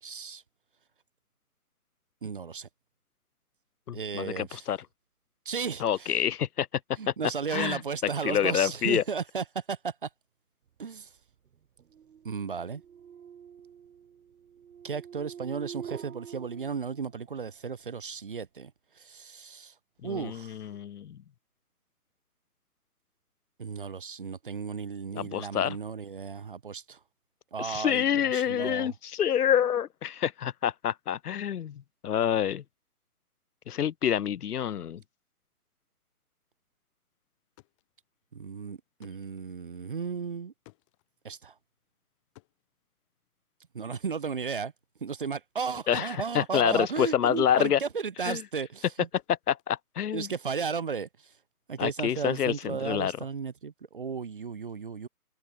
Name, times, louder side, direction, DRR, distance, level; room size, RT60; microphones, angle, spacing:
voice 1, 0.0-0.4 2.2-2.7 3.9-4.6 5.5-6.2 7.0-10.1 10.8-11.1 12.2-12.8 14.8-18.7 19.0-19.7 20.0-20.6 23.6-27.0 27.5-28.9 38.3-40.5 41.2-41.5 43.7-44.7 45.0-49.1 50.1-51.1 51.7-55.1, right 5 dB, 35° right, 0.7 m, -34 dB
voice 2, 3.9-4.8 5.8-6.7 7.1-7.2 7.5-7.8 8.2-9.0 20.0-21.2 25.1-25.8 27.6-32.6 33.7-35.0 45.9-47.8 48.2-48.4 49.5-50.3 51.8-53.1, left 9 dB, 85° left, 0.6 m, -27 dB
sound 1, 11.0-17.5, right 8 dB, 80° right, 0.6 m, -46 dB
sound 2, 37.3-47.2 47.5-50.5, left 22 dB, 20° left, 3.8 m, -61 dB
figure-of-eight pair, 145°, 45 cm